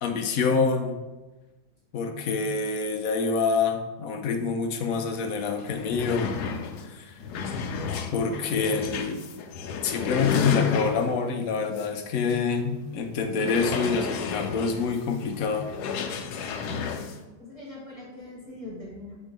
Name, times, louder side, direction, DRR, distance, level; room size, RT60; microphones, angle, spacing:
voice 1, 0.0-1.0 1.9-6.3 6.8-7.2 8.1-9.3 9.8-15.7 18.7-18.9, left 5 dB, 65° left, 5 dB, 1.0 m, -26 dB
sound 1, 5.2-5.3 5.6-11.3 11.8-11.9 12.3-12.4 13.3-17.2, left 6 dB, 85° left, 1.2 m, -32 dB
voice 2, 17.0-19.2, left 1 dB, 20° left, -5 dB, 1.5 m, -42 dB
4.5 x 4.5 x 5.2 m, 1.2 s
omnidirectional pair, 1.7 m